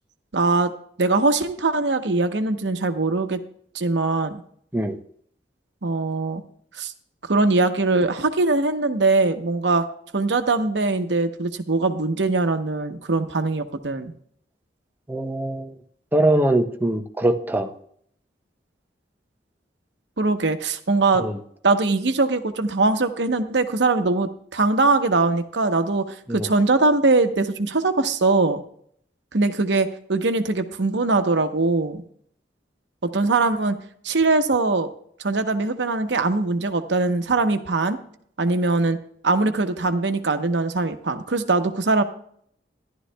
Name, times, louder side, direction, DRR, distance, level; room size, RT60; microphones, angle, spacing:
voice 1, 0.3-0.7 1.0-3.4 3.7-4.4 5.8-6.4 6.8-6.9 7.3-9.9 10.1-14.1 20.2-21.2 21.6-28.6 29.3-32.0 33.0-33.7 34.0-34.9 35.2-38.0 38.4-39.0 39.2-42.0, right 3 dB, 80° right, 8 dB, 0.9 m, -21 dB
voice 2, 15.1-15.7 16.1-17.7 21.2-21.4 26.3-26.5, right 1 dB, 10° right, 5 dB, 0.7 m, -22 dB
14.0 x 11.5 x 2.2 m, 0.64 s
head